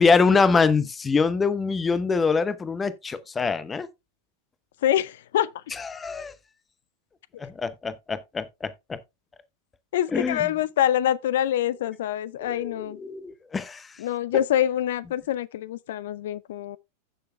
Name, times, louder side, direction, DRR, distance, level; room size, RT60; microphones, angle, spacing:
voice 1, 0.0-3.9 5.7-6.3 7.4-9.0 10.1-10.5 12.4-13.9, left 4 dB, 15° left, 0.9 m, -24 dB
voice 2, 4.8-5.5 9.9-13.0 14.0-16.8, left 11 dB, 55° left, 0.6 m, -25 dB
15.5 x 6.8 x 2.2 m
figure-of-eight pair, 90°, 0 cm